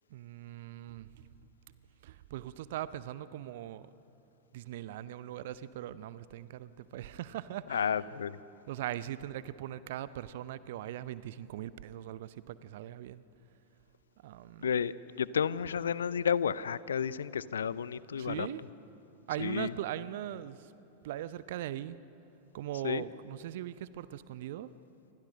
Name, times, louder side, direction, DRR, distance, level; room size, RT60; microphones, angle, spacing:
voice 1, 0.1-1.3 1.7-1.8 2.0-3.9 4.5-8.0 8.7-13.2 14.2-14.7 18.2-18.6 19.3-20.7 21.0-22.0 22.5-24.7, right 12 dB, 55° right, 16 dB, 0.7 m, -40 dB
voice 2, 7.7-8.3 14.6-18.5 19.4-19.7 22.8-23.0, left 7 dB, 65° left, 18 dB, 0.7 m, -31 dB
27.5 x 25.0 x 6.4 m, 3.0 s
figure-of-eight pair, 90°, 0 cm